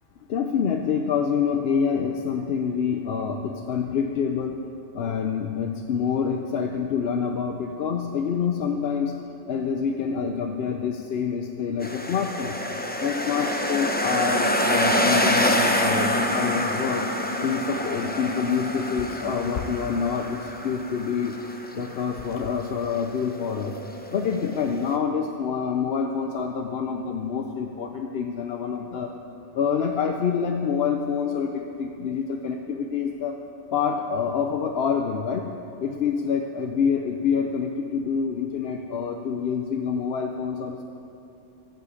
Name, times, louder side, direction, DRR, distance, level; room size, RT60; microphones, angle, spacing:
voice 1, 0.3-4.6 4.9-9.2 9.5-12.6 13.0-17.1 17.4-21.4 21.7-23.8 24.1-29.1 29.5-33.4 33.7-35.5 35.8-40.8, left 6 dB, 65° left, 3 dB, 0.8 m, -27 dB
sound 1, 11.8-25.0, left 1 dB, 10° left, 0.6 m, -26 dB
15.0 x 5.7 x 8.3 m, 2.9 s
omnidirectional pair, 1.2 m